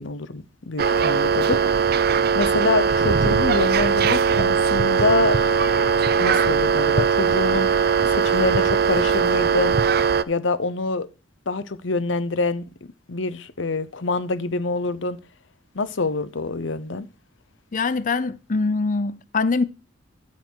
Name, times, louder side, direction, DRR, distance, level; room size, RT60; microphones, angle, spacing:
voice 1, 0.0-1.6 2.3-5.4 6.2-7.7 8.1-9.8 10.3-11.1 11.5-12.6 13.1-15.2 15.7-17.1, left 3 dB, 70° left, 0.9 m, -25 dB
sound 1, 0.8-10.2, right 5 dB, 55° right, 0.6 m, -20 dB
voice 2, 17.7-19.6, left 4 dB, 40° left, 0.6 m, -23 dB
13.5 x 5.9 x 4.7 m
head